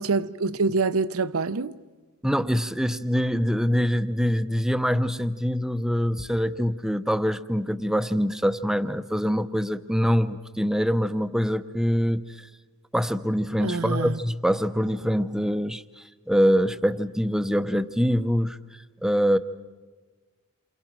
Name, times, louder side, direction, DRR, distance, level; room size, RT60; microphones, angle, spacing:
voice 1, 0.0-1.7 13.6-14.2, right 4 dB, 70° right, 0.8 m, -26 dB
voice 2, 2.2-12.5 12.9-18.6 19.0-19.4, equal, ahead, 0.8 m, -24 dB
29.5 x 27.5 x 6.1 m
head